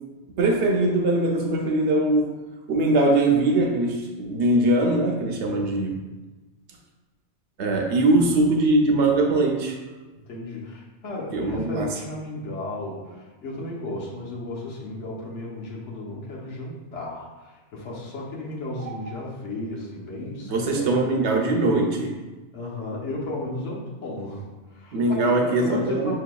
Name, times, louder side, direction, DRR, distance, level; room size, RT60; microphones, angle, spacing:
voice 1, 0.4-2.4 2.7-6.0 7.6-9.8 11.3-11.9 20.5-22.2 24.9-26.2, right 2 dB, 75° right, 2 dB, 0.9 m, -21 dB
voice 2, 5.4-6.0 10.3-20.9 22.5-26.2, left 1 dB, 85° left, -4 dB, 1.3 m, -34 dB
6.0 x 2.8 x 2.2 m, 1.2 s
omnidirectional pair, 1.2 m